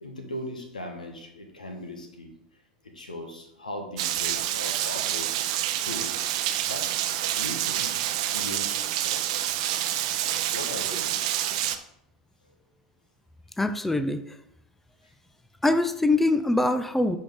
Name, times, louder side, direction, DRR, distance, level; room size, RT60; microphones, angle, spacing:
voice 1, 0.0-2.3 2.9-5.3 5.8-6.9 7.3-8.0 8.3-9.4 10.2-11.2 15.0-15.1, left 1 dB, 85° left, 3 dB, 1.5 m, -39 dB
Rain, 4.0-11.8, right 12 dB, 55° right, 0.7 m, -28 dB
voice 2, 13.6-14.4 15.6-17.2, left 2 dB, 5° left, 10 dB, 0.5 m, -23 dB
10.0 x 4.7 x 3.6 m, 0.79 s
figure-of-eight pair, 80°, 4 cm